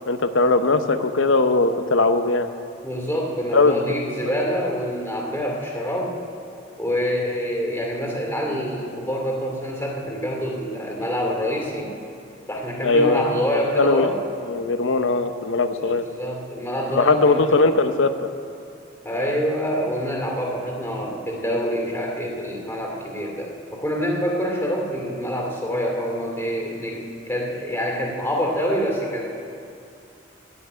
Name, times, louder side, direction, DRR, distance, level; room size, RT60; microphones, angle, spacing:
voice 1, 0.1-2.5 3.5-3.7 12.8-13.4 13.8-14.1 14.5-16.0 16.9-18.3, left 3 dB, 85° left, 9 dB, 0.8 m, -19 dB
voice 2, 2.8-6.2 6.8-11.9 12.5-14.2 15.8-17.7 19.0-29.2, equal, 10° left, -1 dB, 2.3 m, -26 dB
15.5 x 6.0 x 9.7 m, 2.6 s
head